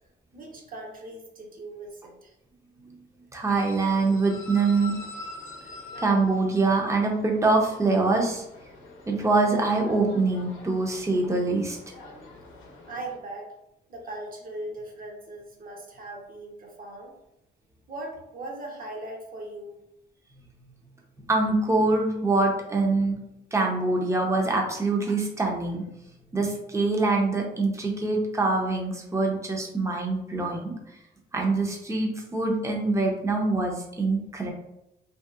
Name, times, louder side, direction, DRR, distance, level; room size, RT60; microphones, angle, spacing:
voice 1, 0.3-2.3 12.9-13.5 13.9-17.1 17.9-19.8, right 2 dB, 45° right, 0 dB, 0.8 m, -39 dB
voice 2, 3.3-4.9 6.0-8.4 9.1-11.8 21.3-23.2 23.5-25.8 26.3-30.7 31.3-34.5, right 3 dB, 15° right, 0 dB, 0.6 m, -24 dB
sound 1, 3.5-13.2, left 2 dB, 80° left, 0.6 m, -45 dB
2.8 x 2.8 x 2.4 m, 0.87 s
cardioid pair, 90°, 20 cm